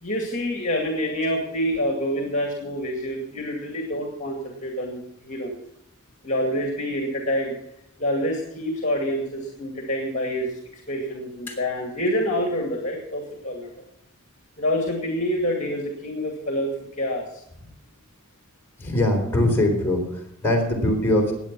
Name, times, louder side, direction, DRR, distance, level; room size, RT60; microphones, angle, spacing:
voice 1, 0.0-5.6 6.2-7.5 8.0-13.7 14.6-16.7 17.0-17.4, equal, 35° left, 2 dB, 2.2 m, -27 dB
voice 2, 18.8-21.3, left 1 dB, 10° left, 0 dB, 4.0 m, -22 dB
19.0 x 8.3 x 6.1 m, 0.77 s
head